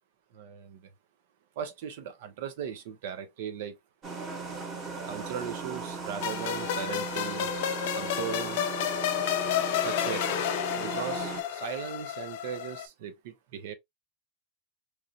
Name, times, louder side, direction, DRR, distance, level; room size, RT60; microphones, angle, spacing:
voice 1, 0.3-0.9 1.6-3.8 5.1-7.5 7.9-8.6 9.8-10.4 10.7-13.7, right 8 dB, 70° right, 0.8 m, -38 dB
sound 1, 4.0-11.4, right 4 dB, 30° right, 1.3 m, -37 dB
sound 2, 6.2-12.9, left 11 dB, 70° left, 0.5 m, -31 dB
3.2 x 2.7 x 2.4 m
supercardioid pair, 160°, 0 cm